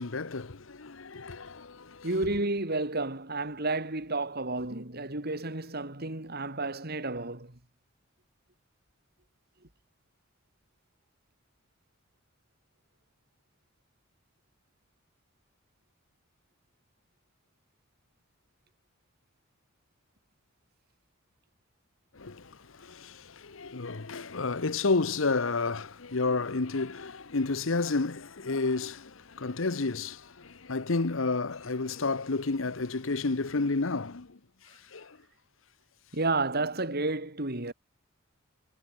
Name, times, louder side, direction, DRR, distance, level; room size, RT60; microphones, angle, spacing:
voice 1, 0.0-2.1 22.1-34.4 34.6-35.2, left 3 dB, 75° left, 1.0 m, -31 dB
voice 2, 2.0-7.6 36.1-37.7, right 2 dB, 50° right, 3.9 m, -31 dB
head